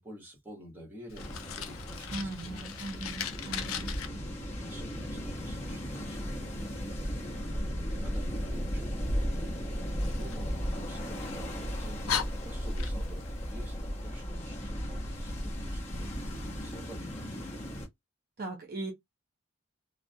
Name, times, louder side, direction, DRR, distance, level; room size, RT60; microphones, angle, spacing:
voice 1, 0.0-3.6 4.0-16.2 16.5-17.6, equal, 10° right, 1.0 m, -50 dB
Fire, 1.1-4.1 10.0-11.2 11.7-11.8 12.1-13.3, left 8 dB, 85° left, 0.4 m, -38 dB
sound 1, 1.2-17.9, equal, 30° left, 0.8 m, -35 dB
voice 2, 2.1-3.9 18.4-18.9, right 2 dB, 45° right, 0.6 m, -39 dB
2.3 x 2.0 x 2.6 m
head